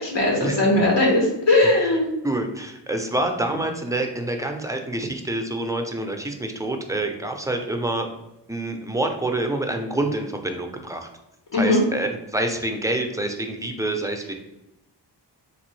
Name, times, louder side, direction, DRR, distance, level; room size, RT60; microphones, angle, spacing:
voice 1, 0.0-2.1 11.5-11.8, left 2 dB, 80° left, -2 dB, 1.1 m, -19 dB
voice 2, 2.2-8.1 8.5-11.1 11.6-14.3, right 1 dB, 10° right, 4 dB, 0.4 m, -27 dB
3.6 x 3.0 x 3.1 m, 0.91 s
wide cardioid pair, 80°, 43 cm